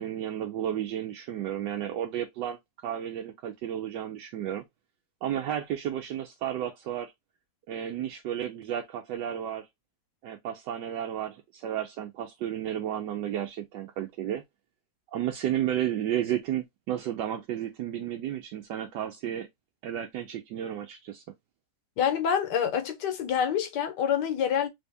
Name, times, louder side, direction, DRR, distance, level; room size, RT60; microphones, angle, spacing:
voice 1, 0.0-2.6 2.8-4.6 5.2-7.1 7.7-9.7 10.2-14.4 15.1-19.5 19.8-21.2, right 10 dB, 80° right, 1.2 m, -32 dB
voice 2, 22.0-24.7, left 8 dB, 75° left, 1.3 m, -27 dB
3.3 x 2.7 x 3.3 m
omnidirectional pair, 1.9 m